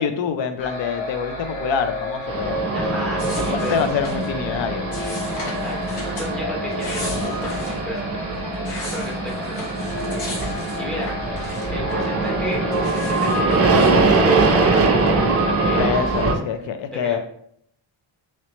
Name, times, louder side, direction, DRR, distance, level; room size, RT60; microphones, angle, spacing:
voice 1, 0.0-2.6 3.4-4.9 15.8-17.2, left 7 dB, 65° left, 9 dB, 0.5 m, -25 dB
sound 1, 0.6-16.2, left 2 dB, 40° left, 1.1 m, -32 dB
sound 2, 2.3-16.3, right 3 dB, 30° right, 0.4 m, -22 dB
voice 2, 2.7-3.9 5.6-10.2 10.8-11.2 11.7-15.9 16.9-17.2, equal, ahead, -2 dB, 0.7 m, -34 dB
sound 3, 3.2-4.3 4.9-6.3 6.7-7.8 8.3-11.9 12.2-14.0, left 1 dB, 80° left, 1.4 m, -36 dB
3.0 x 3.0 x 2.9 m, 0.68 s
wide cardioid pair, 140°, 49 cm